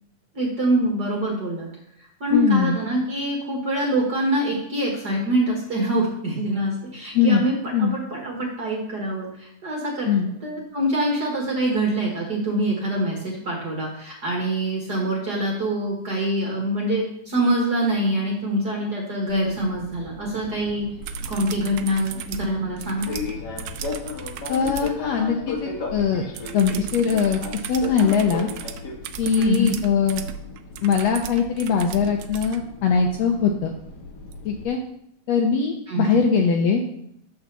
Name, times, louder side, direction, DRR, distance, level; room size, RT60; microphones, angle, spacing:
voice 1, 0.3-1.7 2.2-20.9 21.3-23.2 29.4-29.8 35.9-36.2, right 1 dB, 40° right, -2 dB, 1.6 m, -25 dB
voice 2, 2.3-2.7 7.1-7.5 7.7-7.9 10.1-10.3 24.5-26.3 26.5-27.4 27.7-28.5 29.2-30.2 30.8-33.7 34.4-34.8 35.3-36.8, left 6 dB, 75° left, 3 dB, 1.6 m, -21 dB
Fixed-wing aircraft airplane, 19.3-34.7, left 5 dB, 50° left, 1.2 m, -36 dB
sound 1, 21.0-25.0 26.3-32.6 34.3-34.4, right 7 dB, 85° right, 1.5 m, -36 dB
6.2 x 6.2 x 6.8 m, 0.74 s
omnidirectional pair, 3.6 m